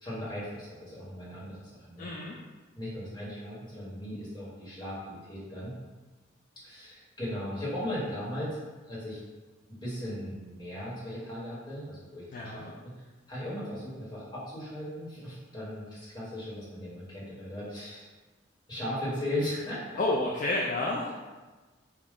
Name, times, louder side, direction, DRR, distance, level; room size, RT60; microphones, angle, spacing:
voice 1, 0.0-2.1 2.7-5.8 6.6-8.6 8.9-9.2 9.7-12.9 13.3-18.1 18.7-19.8, left 1 dB, 20° left, -8 dB, 1.3 m, -37 dB
voice 2, 2.0-2.3 12.3-12.7 20.0-21.1, left 2 dB, 45° left, -3 dB, 0.4 m, -30 dB
3.5 x 2.4 x 3.7 m, 1.2 s
head